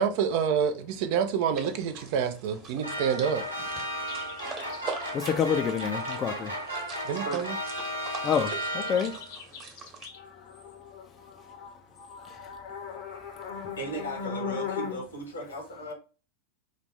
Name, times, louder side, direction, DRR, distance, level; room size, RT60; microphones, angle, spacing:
voice 1, 0.0-3.5 7.0-7.5, right 7 dB, 45° right, 0.6 m, -27 dB
sound 1, 1.5-10.1, right 4 dB, 30° right, 1.2 m, -43 dB
sound 2, 2.8-9.4, equal, 80° right, 1.1 m, -34 dB
sound 3, 4.1-5.0 8.1-15.1, left 6 dB, 50° left, 0.9 m, -39 dB
voice 2, 5.1-6.5 8.2-9.2 11.4-11.5 12.2-12.5, left 7 dB, 25° left, 0.5 m, -28 dB
voice 3, 6.7-8.2 9.5-9.7 13.7-15.9, right 1 dB, 70° left, 1.3 m, -39 dB
4.2 x 2.6 x 3.1 m
figure-of-eight pair, 90°, 0 cm